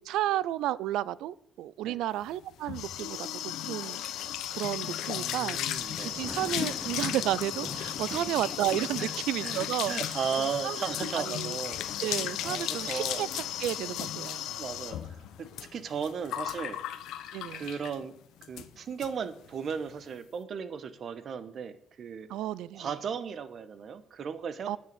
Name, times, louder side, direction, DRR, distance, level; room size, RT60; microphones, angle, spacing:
voice 1, 0.1-4.0 4.5-5.6 6.0-9.9 10.4-10.8 11.3-11.6 12.0-14.5 17.3-17.6 22.3-22.9 24.7-24.8, right 13 dB, 90° right, 0.4 m, -32 dB
sound 1, 2.3-18.0 18.4-18.7 19.0-19.1 19.4-19.8, left 11 dB, 85° left, 0.8 m, -35 dB
voice 2, 5.1-6.2 8.0-8.5 9.0-9.1 9.4-9.6 9.9-11.8 12.4-13.3 14.6-16.8 17.5-18.1 18.4-22.3 22.7-24.8, right 6 dB, 55° right, 1.2 m, -36 dB
Thunder, 5.8-15.5 16.1-16.2 16.6-16.7 16.9-17.0, left 1 dB, 10° left, 0.9 m, -48 dB
9.9 x 6.4 x 8.9 m
cardioid pair, 90°, 0 cm